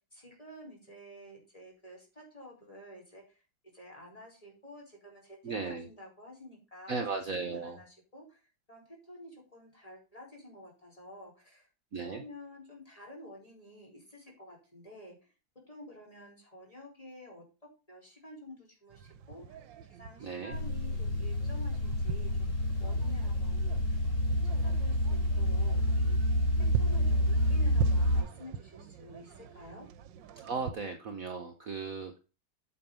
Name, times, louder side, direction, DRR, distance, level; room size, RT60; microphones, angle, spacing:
voice 1, 0.1-3.4 3.7-8.4 8.7-11.7 12.0-15.2 15.7-17.4 17.9-22.5 22.8-24.1 24.4-29.9, left 1 dB, 20° left, -1 dB, 5.2 m, -50 dB
voice 2, 5.4-5.9 6.9-7.8 11.9-12.2 20.2-20.6 30.4-32.2, right 4 dB, 50° right, 5 dB, 1.4 m, -36 dB
sound 1, 18.9-30.7, right 7 dB, 80° right, 1.5 m, -41 dB
sound 2, 20.5-28.2, left 1 dB, 50° left, 5.5 m, -28 dB
8.5 x 7.0 x 5.7 m, 0.32 s
omnidirectional pair, 2.0 m